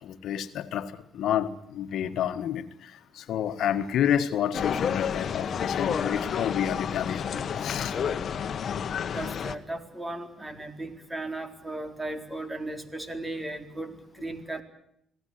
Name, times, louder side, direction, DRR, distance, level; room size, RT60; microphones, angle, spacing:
voice 1, 0.0-8.0, left 9 dB, 75° left, 9 dB, 1.6 m, -29 dB
sound 1, 4.5-9.6, left 7 dB, 55° left, 1.5 m, -30 dB
voice 2, 9.1-14.6, right 2 dB, 15° right, 8 dB, 4.1 m, -36 dB
26.0 x 18.0 x 9.5 m, 0.73 s
cardioid pair, 90°, 0 cm